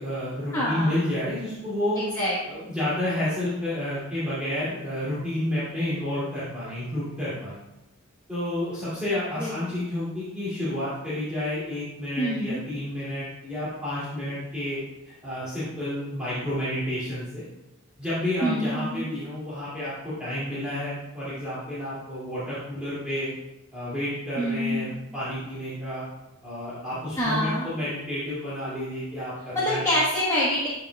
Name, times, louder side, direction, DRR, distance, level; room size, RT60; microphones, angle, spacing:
voice 1, 0.0-2.0 2.5-7.6 8.3-14.8 15.2-17.4 18.0-23.3 23.7-26.1 26.4-29.9, left 1 dB, 5° right, -12 dB, 2.4 m, -30 dB
voice 2, 0.5-1.0 2.0-2.7 9.4-9.5 12.2-12.6 18.4-19.1 24.4-24.9 27.2-27.7 29.5-30.7, equal, 15° left, -8 dB, 1.3 m, -26 dB
12.5 x 4.9 x 2.3 m, 0.93 s
head